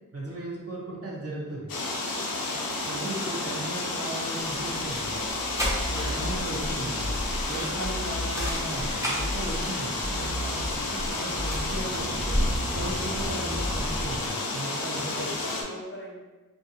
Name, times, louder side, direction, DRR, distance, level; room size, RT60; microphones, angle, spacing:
voice 1, 0.1-1.7 2.8-5.2 6.0-7.1 7.5-12.4 12.7-15.3, right 1 dB, 45° right, -4 dB, 0.7 m, -36 dB
sound 1, 1.7-15.6, left 2 dB, 80° left, 0.5 m, -31 dB
sound 2, 4.4-14.3, equal, 10° right, 0.6 m, -35 dB
sound 3, 5.6-14.3, equal, 80° right, 1.0 m, -35 dB
voice 2, 6.0-6.4 7.6-7.8 14.8-16.2, left 1 dB, 35° left, -3 dB, 0.6 m, -40 dB
2.5 x 2.4 x 2.7 m, 1.3 s
wide cardioid pair, 60°, 34 cm